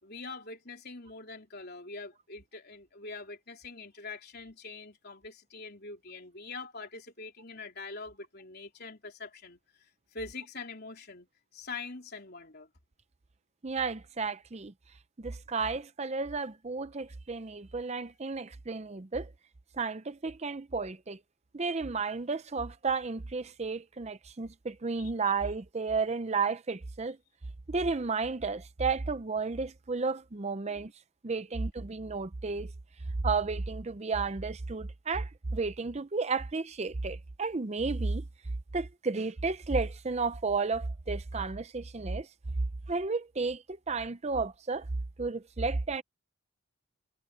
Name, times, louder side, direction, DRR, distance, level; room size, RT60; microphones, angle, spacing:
voice 1, 0.0-12.7 24.9-25.1 30.7-30.9 31.5-31.6, left 3 dB, 45° left, 3.8 m, -44 dB
voice 2, 13.6-14.7 15.2-19.3 19.8-21.2 21.5-27.2 27.7-30.9 31.2-32.7 33.2-38.2 38.7-42.3 42.9-44.9 45.2-46.0, right 4 dB, 30° right, 0.5 m, -32 dB
head